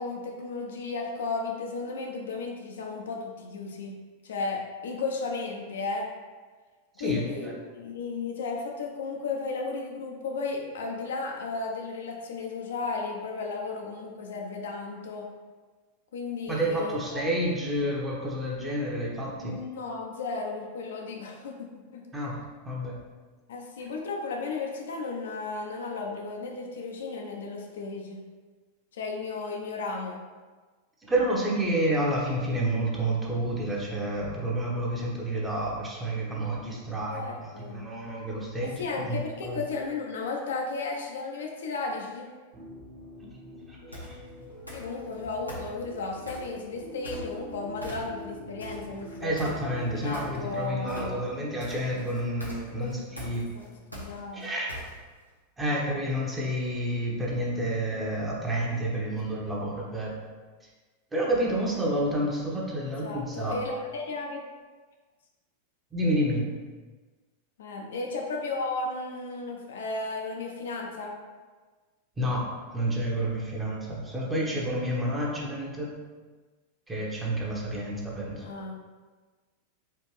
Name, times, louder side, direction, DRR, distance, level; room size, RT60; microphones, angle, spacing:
voice 1, 0.0-4.0 4.2-6.1 7.0-15.3 16.1-17.2 19.3-22.0 23.5-28.2 28.9-30.2 37.1-37.9 38.8-42.3 44.7-49.3 49.9-51.3 52.8-52.9 53.5-54.5 62.9-64.4 67.6-71.1 78.4-78.7, left 3 dB, 60° left, 1 dB, 0.5 m, -34 dB
voice 2, 7.0-7.5 16.5-19.5 22.1-22.4 22.6-23.0 31.0-39.6 43.7-44.2 49.2-53.5 54.3-54.7 55.6-60.1 61.1-63.6 65.9-66.5 72.2-75.9 76.9-78.5, right 1 dB, 15° right, -3 dB, 0.9 m, -29 dB
sound 1, 42.5-50.5, left 1 dB, 40° right, 1.0 m, -45 dB
sound 2, 43.9-44.2 44.7-45.1 45.5-46.5 47.0-47.5 47.8-48.3 48.6-55.2, equal, 90° right, 0.7 m, -41 dB
4.4 x 2.5 x 3.1 m, 1.4 s
figure-of-eight pair, 90°, 0 cm